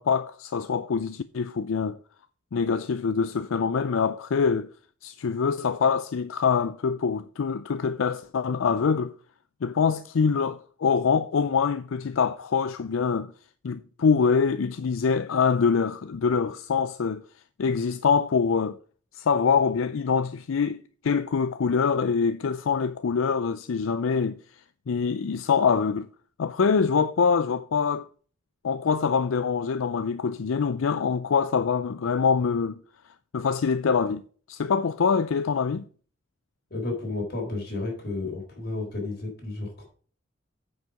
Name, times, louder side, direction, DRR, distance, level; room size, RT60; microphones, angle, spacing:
voice 1, 0.0-2.0 2.5-4.7 5.0-9.1 9.6-13.3 13.6-17.2 17.6-18.8 19.1-20.8 21.0-24.4 24.9-26.1 26.4-28.1 28.6-32.8 33.3-34.2 34.5-35.9, left 5 dB, 85° left, 0.5 m, -24 dB
voice 2, 36.7-39.9, left 2 dB, 55° left, 4.1 m, -32 dB
9.2 x 5.6 x 5.1 m
head